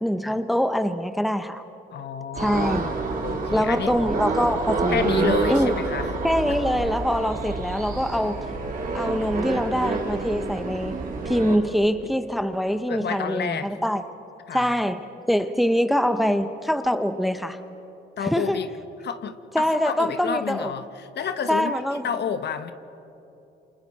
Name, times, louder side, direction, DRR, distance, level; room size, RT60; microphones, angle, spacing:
voice 1, 0.0-1.6 2.4-2.9 3.5-5.7 6.2-8.5 8.9-11.0 11.3-14.0 14.5-17.6 18.2-18.6 19.5-20.7 21.5-22.1, equal, ahead, 9 dB, 0.9 m, -24 dB
voice 2, 1.9-2.9 3.2-3.9 4.9-6.1 6.5-6.6 11.4-11.5 12.0-12.1 12.9-13.7 14.5-14.8 18.2-18.7 19.0-21.8 22.0-22.7, left 7 dB, 60° left, 10 dB, 1.1 m, -30 dB
sound 1, 2.3-11.6, right 3 dB, 45° right, 3.0 m, -28 dB
29.0 x 26.5 x 4.2 m, 3.0 s
cardioid pair, 90°, 20 cm